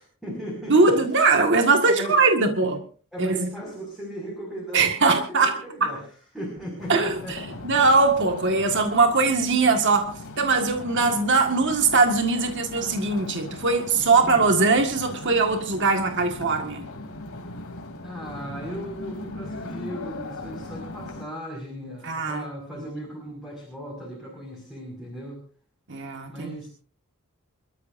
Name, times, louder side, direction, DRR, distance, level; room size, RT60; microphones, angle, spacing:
voice 1, 0.0-1.0 1.9-2.2 2.6-2.7 3.1-6.1 6.3-7.6 14.2-14.5 18.0-25.4 26.3-26.7, equal, ahead, -2 dB, 5.7 m, -37 dB
voice 2, 0.7-2.8 3.2-3.5 4.7-5.9 6.9-16.9 22.0-22.4 25.9-26.6, right 3 dB, 55° right, 4 dB, 1.8 m, -21 dB
sound 1, 6.8-21.2, left 2 dB, 80° left, 3.3 m, -38 dB
28.5 x 13.5 x 2.7 m, 0.42 s
head